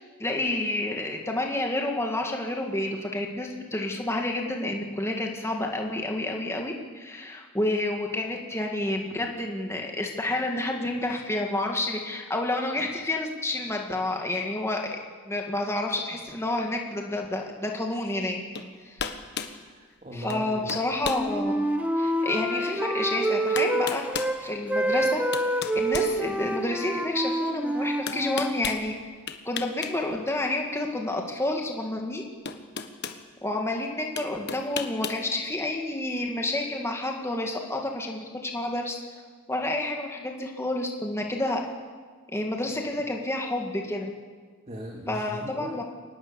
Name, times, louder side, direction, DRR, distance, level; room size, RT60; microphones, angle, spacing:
voice 1, 0.2-14.8 15.2-18.4 18.8-19.0 20.1-21.6 22.0-24.0 24.4-25.2 25.7-28.9 29.5-32.3 33.4-39.0 39.5-41.6 42.3-44.1 45.1-45.8, left 2 dB, 10° left, 1 dB, 2.3 m, -29 dB
sound 1, 18.5-18.7 19.0-19.6 20.3-20.4 20.7-21.3 21.8-21.9 23.0-23.1 23.6-24.4 25.0-26.7 28.1-28.8 29.3-29.9 30.2-30.4 31.8-31.9 32.5-33.2 34.2-35.2, left 6 dB, 50° left, 1.4 m, -34 dB
voice 2, 19.5-20.7 44.7-45.8, equal, 30° right, 0 dB, 2.3 m, -39 dB
Wind instrument woodwind instrument, 21.0-24.4 24.7-28.5, right 1 dB, 5° right, 1.6 m, -27 dB
24.5 x 19.5 x 7.2 m, 1.5 s
head